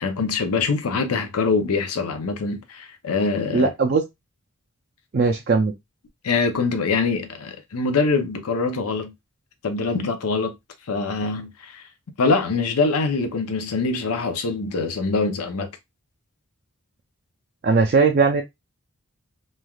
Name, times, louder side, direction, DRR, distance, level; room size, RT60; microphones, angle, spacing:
voice 1, 0.0-3.7 6.2-9.1 9.6-10.5 10.9-11.8 12.2-15.7, left 4 dB, 80° left, 0.5 m, -24 dB
voice 2, 3.5-4.0 5.1-5.7 17.6-18.4, right 4 dB, 45° right, 0.4 m, -19 dB
3.2 x 2.2 x 2.3 m
head